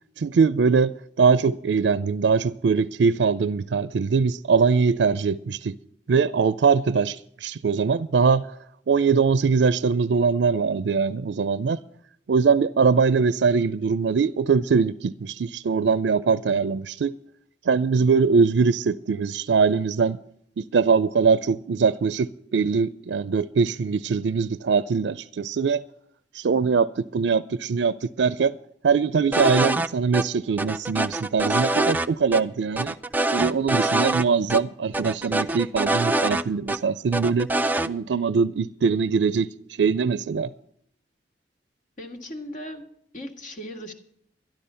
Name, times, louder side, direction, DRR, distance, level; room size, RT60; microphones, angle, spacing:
voice 1, 0.2-5.7 6.1-8.5 8.9-11.8 12.3-17.1 17.7-20.2 20.6-25.8 26.3-28.5 28.8-32.9 33.3-37.5 37.8-39.5 39.8-40.5, right 5 dB, 80° right, 0.4 m, -22 dB
sound 1, 29.3-29.9 30.1-30.2 30.6-32.1 32.3-32.4 32.8-34.2 34.5-34.6 34.9-36.8 37.1-37.9, right 2 dB, 10° right, 0.4 m, -24 dB
voice 2, 42.0-43.9, equal, 45° left, 1.8 m, -38 dB
12.0 x 12.0 x 5.5 m
head